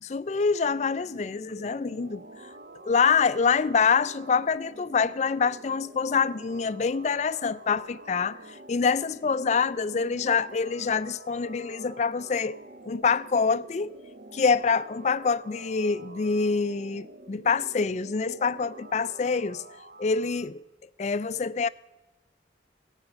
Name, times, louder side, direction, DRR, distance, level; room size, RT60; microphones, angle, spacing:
voice 1, 0.0-2.2 2.8-8.4 8.7-14.0 14.3-19.6 20.0-20.6 21.0-21.7, left 5 dB, 40° left, 0.4 m, -26 dB
sound 1, 0.6-20.5, right 2 dB, 55° right, 0.7 m, -48 dB
16.0 x 8.9 x 5.8 m
head